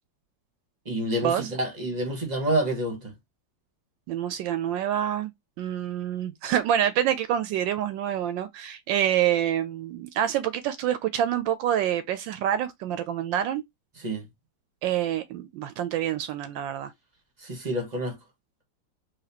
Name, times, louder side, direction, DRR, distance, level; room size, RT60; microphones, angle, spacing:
voice 1, 0.8-3.1 14.0-14.3 17.4-18.2, right 1 dB, 25° right, 1.1 m, -28 dB
voice 2, 4.1-5.3 5.6-13.6 14.8-16.9, right 10 dB, 80° right, 1.2 m, -27 dB
4.1 x 3.3 x 2.8 m
omnidirectional pair, 2.1 m